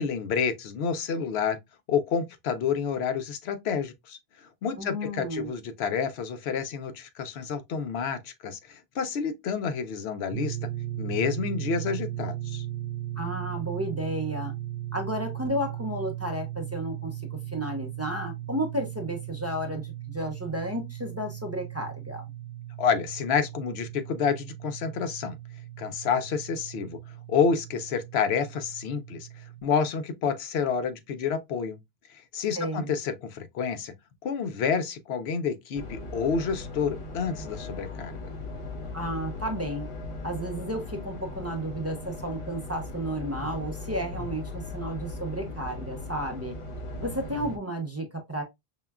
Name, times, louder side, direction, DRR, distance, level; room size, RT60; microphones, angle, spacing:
voice 1, 0.0-1.6 1.9-4.2 4.6-10.6 11.0-12.7 22.8-25.4 25.8-27.0 27.3-29.3 29.6-31.8 32.3-33.9 34.2-38.3, left 6 dB, 80° left, 0.8 m, -29 dB
voice 2, 4.8-5.5 13.2-14.5 14.9-22.2 32.5-32.9 38.9-39.9 40.2-46.6 47.0-48.4, right 1 dB, 15° right, 0.6 m, -32 dB
sound 1, 10.3-29.6, right 13 dB, 70° right, 0.9 m, -37 dB
sound 2, 35.7-47.6, left 3 dB, 35° left, 0.6 m, -38 dB
5.4 x 2.2 x 2.2 m
omnidirectional pair, 1.1 m